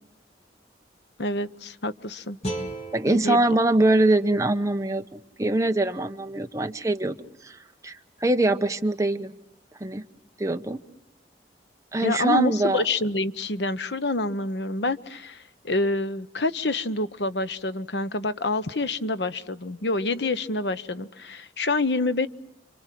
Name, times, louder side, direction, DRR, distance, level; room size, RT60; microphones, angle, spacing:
voice 1, 1.2-2.4 3.1-3.4 12.0-22.3, left 2 dB, 75° left, 12 dB, 1.1 m, -27 dB
sound 1, 2.4-5.5, right 1 dB, 35° left, 3.3 m, -38 dB
voice 2, 2.9-7.2 7.4-9.3 9.8-10.0 10.4-10.8 11.9-12.8, right 2 dB, 20° right, 7 dB, 1.1 m, -23 dB
29.0 x 25.0 x 7.6 m, 0.89 s
head